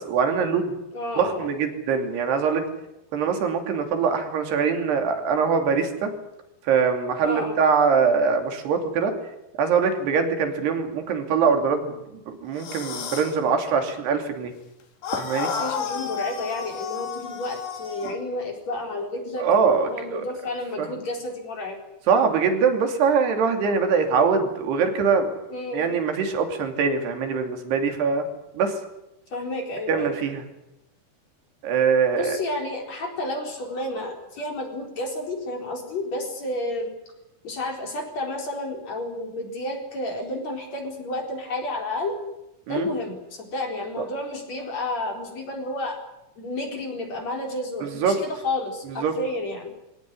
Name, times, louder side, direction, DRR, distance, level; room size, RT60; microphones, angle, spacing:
voice 1, 0.0-0.8 1.2-2.6 3.1-6.1 6.7-9.1 9.6-12.0 12.3-14.5 15.2-15.5 19.4-20.2 20.8-20.9 22.1-25.3 25.7-28.3 28.5-28.7 29.9-30.4 31.6-32.4 42.7-42.9 47.8-48.2 49.0-49.1, right 5 dB, 75° right, 5 dB, 4.9 m, -23 dB
voice 2, 0.9-1.5 7.2-7.6 15.5-21.8 25.5-25.8 29.3-30.2 32.1-36.9 37.4-42.2 42.7-46.1 46.4-49.7, left 2 dB, 40° left, 2 dB, 5.4 m, -31 dB
sound 1, 12.5-13.4 15.0-18.2, left 7 dB, 80° left, 4.6 m, -32 dB
23.5 x 18.0 x 9.9 m, 0.90 s
omnidirectional pair, 4.7 m